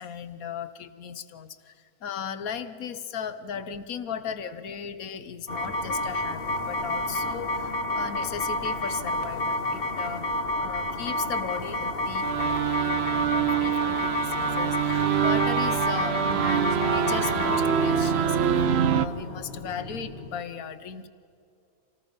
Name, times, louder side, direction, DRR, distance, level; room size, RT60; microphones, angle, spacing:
voice 1, 0.0-10.3 10.6-18.6 18.9-21.1, left 7 dB, 60° left, 12 dB, 1.3 m, -37 dB
sound 1, 5.5-20.4, left 1 dB, 35° left, 1.4 m, -30 dB
sound 2, 12.2-19.1, right 9 dB, 60° right, 0.6 m, -25 dB
27.0 x 18.5 x 5.4 m, 2.6 s
omnidirectional pair, 1.9 m